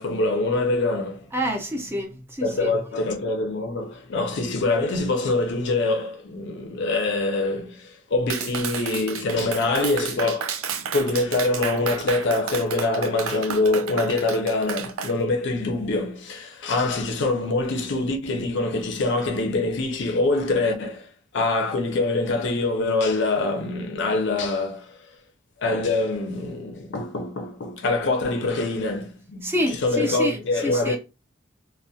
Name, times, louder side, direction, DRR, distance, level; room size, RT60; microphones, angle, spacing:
voice 1, 0.0-1.3 2.4-25.0 25.6-29.5 29.8-31.0, left 2 dB, 60° left, 0.5 m, -24 dB
voice 2, 1.3-2.8 29.4-31.0, equal, 10° right, 0.4 m, -28 dB
Clapping, 8.3-15.1, right 7 dB, 85° right, 0.4 m, -32 dB
2.2 x 2.1 x 2.6 m
head